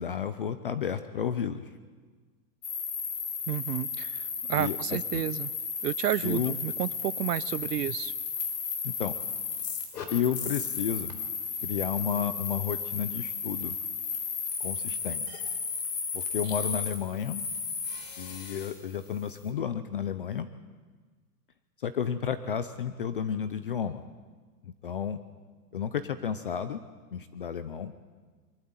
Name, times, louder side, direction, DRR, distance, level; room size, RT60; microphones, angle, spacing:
voice 1, 0.0-1.6 4.5-5.2 6.2-6.5 8.8-9.1 10.1-11.2 11.6-13.8 14.6-15.3 16.1-17.4 18.2-20.5 21.8-24.0 24.6-25.2 25.7-26.8 27.1-27.9, left 8 dB, 35° left, 12 dB, 0.6 m, -32 dB
sound 1, 2.6-18.8, left 6 dB, 85° left, 3.8 m, -34 dB
voice 2, 3.5-4.2 4.5-5.5 5.8-8.1, right 13 dB, 80° right, 20 dB, 0.8 m, -31 dB
23.0 x 12.5 x 9.7 m, 1.4 s
supercardioid pair, 180°, 48 cm